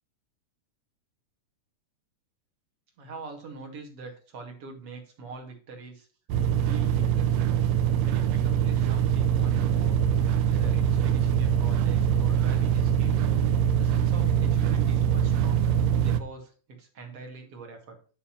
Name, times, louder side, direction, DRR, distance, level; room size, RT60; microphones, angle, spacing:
voice 1, 3.0-6.1 6.6-7.3 8.0-10.1 10.5-13.3 13.8-18.0, right 4 dB, 45° right, 2 dB, 2.9 m, -43 dB
sound 1, 6.3-16.2, right 9 dB, 90° right, 1.5 m, -23 dB
11.0 x 4.3 x 5.8 m, 0.37 s
omnidirectional pair, 4.0 m